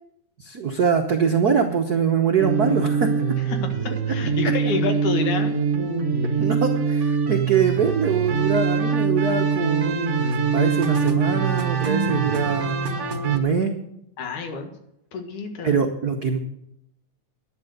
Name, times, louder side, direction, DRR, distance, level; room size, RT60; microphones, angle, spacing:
voice 1, 0.4-3.1 6.4-13.8 15.6-16.4, right 6 dB, 80° right, 3 dB, 0.8 m, -23 dB
sound 1, 2.4-13.4, right 5 dB, 50° right, 0.8 m, -23 dB
voice 2, 3.6-5.5 14.2-14.7 15.1-15.8, left 4 dB, 85° left, 5 dB, 3.1 m, -28 dB
11.5 x 10.5 x 6.6 m, 0.78 s
omnidirectional pair, 3.4 m